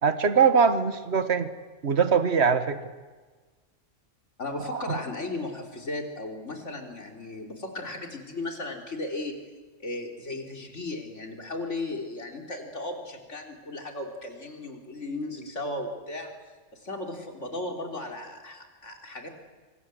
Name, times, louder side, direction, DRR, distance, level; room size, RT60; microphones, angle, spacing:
voice 1, 0.0-1.5 1.8-2.8 4.7-5.0, right 6 dB, 55° right, 11 dB, 1.8 m, -22 dB
voice 2, 4.4-9.4 9.8-16.3 16.7-19.3, left 2 dB, 65° left, 3 dB, 4.0 m, -36 dB
25.5 x 25.0 x 7.8 m, 1.3 s
omnidirectional pair, 1.3 m